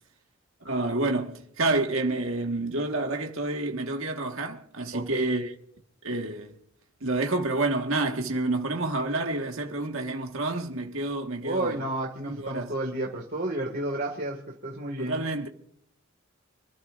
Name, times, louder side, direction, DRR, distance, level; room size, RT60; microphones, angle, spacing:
voice 1, 0.6-5.5 6.0-6.5 7.0-11.9 12.3-12.7 15.0-15.5, right 2 dB, 70° right, 1.6 m, -29 dB
voice 2, 4.9-5.3 11.4-15.3, right 1 dB, 45° right, 2.0 m, -31 dB
27.0 x 13.0 x 2.5 m
head